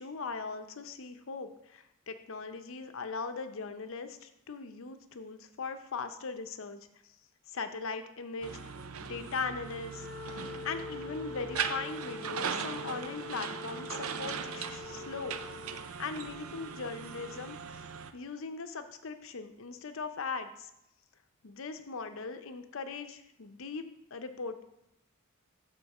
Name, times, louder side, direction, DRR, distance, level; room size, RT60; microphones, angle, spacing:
voice 1, 0.0-6.8 7.5-8.6 9.0-10.1 10.6-15.4 15.7-17.6 18.1-20.7 21.4-24.6, left 4 dB, 65° left, 8 dB, 0.7 m, -39 dB
sound 1, 8.4-18.1, right 6 dB, 80° right, 0.5 m, -39 dB
Wind instrument woodwind instrument, 9.6-15.9, left 5 dB, 40° left, 1.1 m, -45 dB
7.8 x 3.8 x 6.5 m, 0.84 s
head